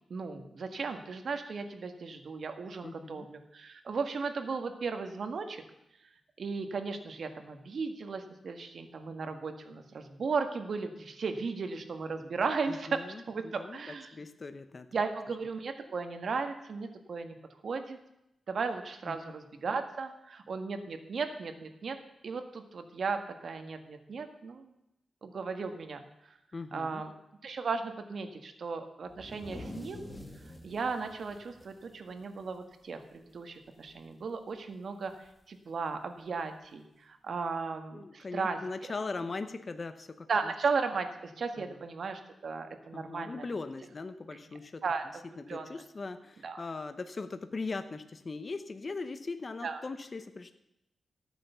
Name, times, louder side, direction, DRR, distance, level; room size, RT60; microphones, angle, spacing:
voice 1, 0.1-5.6 6.4-13.0 13.3-14.1 14.9-17.3 17.6-18.0 18.5-22.0 22.2-24.7 25.2-26.0 26.7-27.1 27.4-30.1 30.6-38.6 40.3-43.5 44.8-45.0 45.5-45.7 46.4-46.6 49.6-49.8, right 4 dB, 60° right, 7 dB, 1.7 m, -36 dB
voice 2, 2.8-3.3 12.7-14.9 19.1-19.2 26.5-27.0 37.9-40.5 41.6-41.8 42.9-44.8 45.4-50.5, left 3 dB, 35° left, 9 dB, 0.9 m, -40 dB
sound 1, 29.1-32.8 33.1-33.3 33.7-34.1 35.3-35.4 36.4-36.5, left 1 dB, 10° left, 1.9 m, -47 dB
14.5 x 9.1 x 6.9 m, 0.86 s
wide cardioid pair, 110°, 0 cm